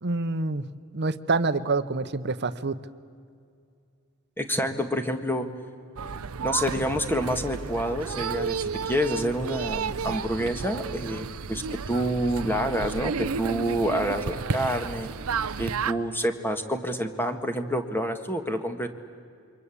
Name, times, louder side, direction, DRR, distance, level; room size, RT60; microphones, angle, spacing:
voice 1, 0.0-0.6 0.9-2.8, right 3 dB, 55° right, 13 dB, 1.0 m, -26 dB
voice 2, 4.4-5.5 6.4-15.1 15.6-18.9, equal, 10° left, 7 dB, 1.7 m, -28 dB
sound 1, 6.0-15.9, right 5 dB, 85° right, 0.7 m, -32 dB
28.0 x 24.0 x 8.5 m, 2.3 s
head